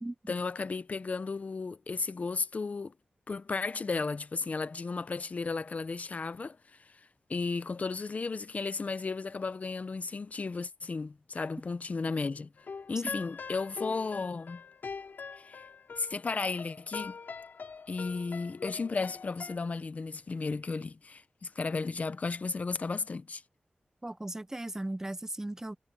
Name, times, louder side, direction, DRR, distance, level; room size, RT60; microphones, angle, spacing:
voice 1, 0.3-2.9 3.3-6.6 7.3-12.5 12.9-14.6 15.4-15.6 16.0-17.1 17.9-23.4, left 4 dB, 50° left, 0.7 m, -34 dB
sound 1, 12.6-19.6, left 5 dB, 80° left, 4.7 m, -43 dB
voice 2, 24.0-25.8, right 1 dB, 15° right, 0.7 m, -37 dB
wide cardioid pair, 95°, 3 cm